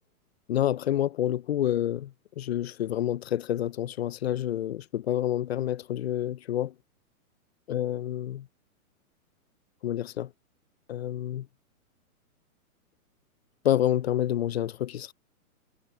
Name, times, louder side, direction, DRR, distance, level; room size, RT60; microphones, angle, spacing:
voice 1, 0.5-6.7 7.7-8.5 9.8-10.3 10.9-11.5 13.6-15.1, left 12 dB, 45° left, 0.4 m, -28 dB
hypercardioid pair, 160°, 45 cm